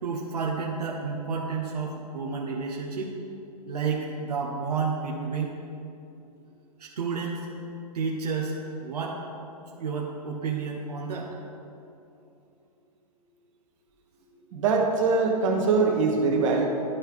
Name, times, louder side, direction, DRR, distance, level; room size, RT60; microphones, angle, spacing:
voice 1, 0.0-3.2 3.7-5.5 6.8-7.5 7.9-9.2 9.8-11.3, right 5 dB, 80° right, -1 dB, 0.9 m, -31 dB
voice 2, 14.5-16.7, right 4 dB, 55° right, 1 dB, 1.4 m, -23 dB
11.5 x 4.5 x 3.5 m, 2.7 s
hypercardioid pair, 125°, 20 cm